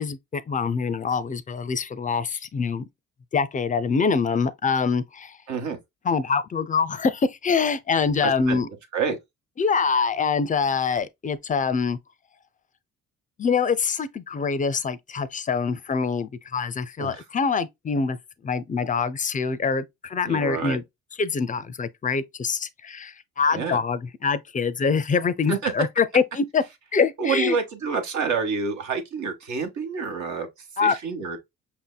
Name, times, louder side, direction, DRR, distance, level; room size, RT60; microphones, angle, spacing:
voice 1, 0.0-2.8 3.3-5.3 6.1-8.7 9.6-12.0 13.4-18.2 18.4-20.8 21.2-26.6 26.9-27.6 30.8-30.9, left 5 dB, 25° left, 0.4 m, -24 dB
voice 2, 5.5-5.8 8.2-8.6 8.9-9.2 17.0-17.2 20.3-20.8 23.5-23.8 25.5-25.7 27.2-30.5 30.8-31.4, right 5 dB, 70° right, 1.1 m, -28 dB
5.5 x 2.7 x 2.2 m
cardioid pair, 90°, 30 cm